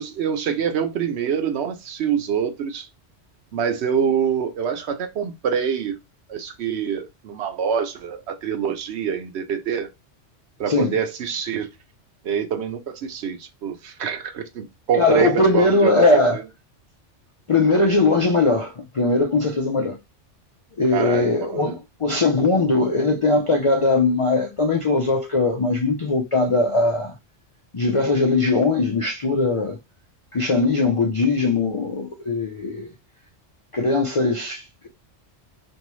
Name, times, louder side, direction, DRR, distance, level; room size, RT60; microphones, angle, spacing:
voice 1, 0.0-2.9 3.5-5.9 6.3-9.9 10.6-11.7 12.2-16.2 20.9-21.7, right 7 dB, 65° right, 0.9 m, -25 dB
voice 2, 10.7-11.0 14.9-16.4 17.5-20.0 20.8-27.1 27.7-29.8 30.3-32.9 33.7-34.9, left 3 dB, 55° left, 0.3 m, -20 dB
4.4 x 2.7 x 3.0 m
omnidirectional pair, 1.2 m